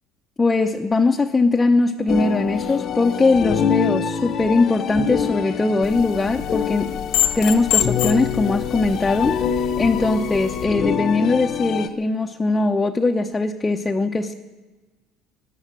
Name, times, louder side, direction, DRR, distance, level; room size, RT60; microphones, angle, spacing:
voice 1, 0.4-7.0 7.4-14.3, left 3 dB, 15° left, 2 dB, 0.7 m, -20 dB
sound 1, 2.1-11.9, left 7 dB, 45° left, 0.9 m, -25 dB
sound 2, 5.8-10.7, left 11 dB, 70° left, 0.9 m, -27 dB
18.0 x 11.0 x 7.6 m, 1.2 s
cardioid pair, 120°, 0 cm